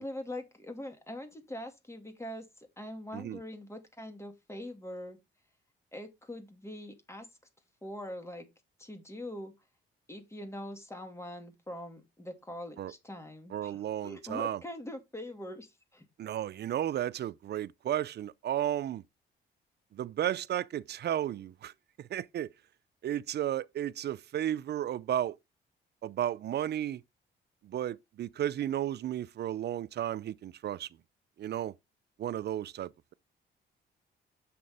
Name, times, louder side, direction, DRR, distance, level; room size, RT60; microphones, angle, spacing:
voice 1, 0.0-5.2 5.9-7.3 7.8-8.5 8.8-9.5 10.1-16.1, left 1 dB, 15° left, 2.8 m, -43 dB
voice 2, 13.5-14.6 16.2-19.0 19.9-21.7 22.0-22.5 23.0-25.4 26.0-27.0 27.6-30.9 31.4-31.7 32.2-33.1, right 11 dB, 55° right, 0.5 m, -33 dB
7.5 x 6.7 x 3.5 m
cardioid pair, 90°, 20 cm